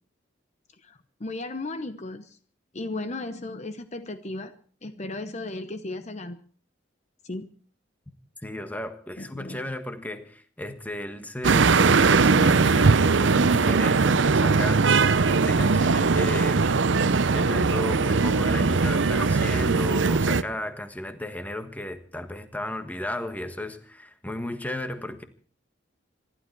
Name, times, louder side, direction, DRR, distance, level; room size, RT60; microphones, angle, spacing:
voice 1, 0.8-2.4 2.7-4.5 4.8-6.4 7.2-7.5 9.2-9.6, left 2 dB, 40° left, 10 dB, 0.9 m, -35 dB
voice 2, 8.4-14.9 15.3-16.6 17.3-25.2, left 1 dB, 10° left, 8 dB, 1.4 m, -34 dB
sound 1, 11.4-20.4, right 4 dB, 85° right, 0.7 m, -20 dB
25.5 x 12.0 x 4.7 m, 0.43 s
head